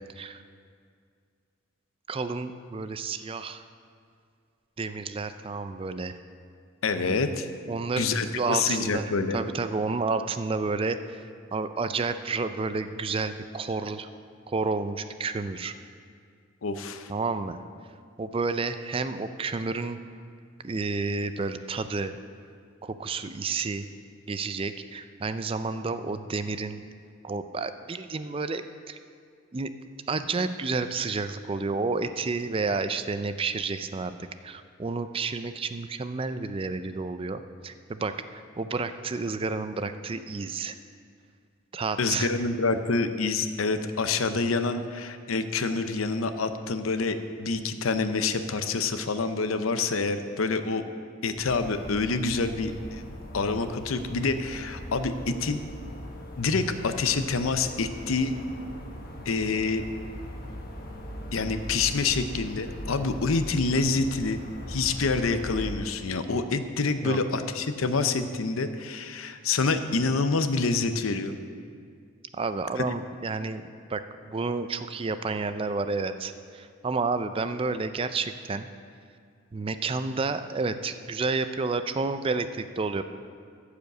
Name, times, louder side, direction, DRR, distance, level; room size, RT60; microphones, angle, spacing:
voice 1, 2.1-3.6 4.8-6.1 7.7-11.3 11.5-14.1 14.5-15.7 17.1-17.6 18.2-20.0 20.6-22.1 22.8-23.9 24.3-26.8 27.2-29.0 29.5-29.7 30.1-34.1 34.4-40.8 41.7-42.3 67.0-67.2 72.3-78.7 79.5-83.0, right 4 dB, 25° right, 11 dB, 0.4 m, -30 dB
voice 2, 6.8-7.5 8.0-9.4 16.6-17.1 42.0-50.8 51.2-53.0 53.3-55.6 56.4-58.3 59.3-59.8 61.3-64.4 64.7-71.4 72.8-72.9, left 4 dB, 80° left, 9 dB, 0.6 m, -27 dB
sound 1, 51.4-65.7, equal, 45° left, 1.1 m, -40 dB
14.0 x 5.1 x 6.7 m, 2.2 s
head